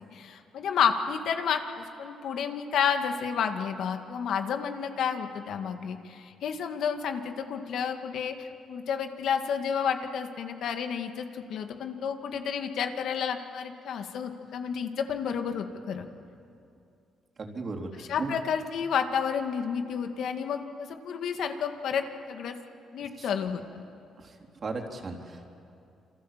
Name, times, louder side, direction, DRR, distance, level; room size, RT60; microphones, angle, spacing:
voice 1, 0.1-16.1 18.0-22.6 22.9-23.8, left 7 dB, 75° left, 6 dB, 2.1 m, -31 dB
voice 2, 17.4-18.3 23.2-23.3 24.2-24.4 24.6-25.5, right 3 dB, 40° right, 2 dB, 3.8 m, -36 dB
28.5 x 24.5 x 7.6 m, 2.6 s
cardioid pair, 90°, 0 cm